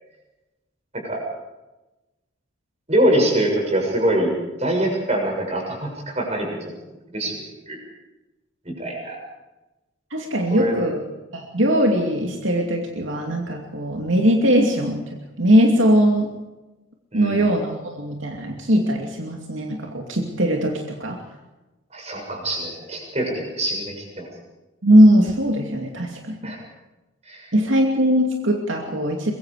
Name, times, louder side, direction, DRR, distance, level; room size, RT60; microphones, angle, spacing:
voice 1, 2.9-4.3 4.6-6.7 7.1-7.4 7.7-7.8 8.7-9.2 10.5-10.8 17.1-17.4 21.9-24.3 26.4-26.6 27.3-27.5, right 1 dB, 30° right, 1 dB, 6.9 m, -24 dB
voice 2, 10.1-11.0 11.3-16.4 17.1-21.2 24.8-26.5 27.5-29.3, equal, 70° right, 2 dB, 2.6 m, -20 dB
24.0 x 22.0 x 5.0 m, 1.1 s
head